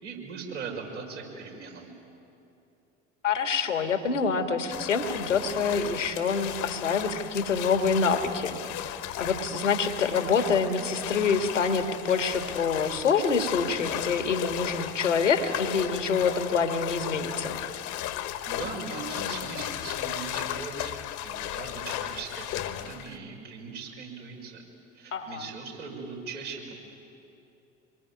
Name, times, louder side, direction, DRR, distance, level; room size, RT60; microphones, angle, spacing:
voice 1, 0.0-1.9 18.5-24.6 24.9-26.7, right 5 dB, 75° right, -1 dB, 5.6 m, -39 dB
voice 2, 3.2-17.6 25.1-25.5, left 5 dB, 85° left, 7 dB, 1.8 m, -26 dB
sound 1, 4.7-23.2, left 12 dB, 55° left, 1.3 m, -35 dB
26.0 x 22.5 x 9.6 m, 2.8 s
figure-of-eight pair, 70°, 36 cm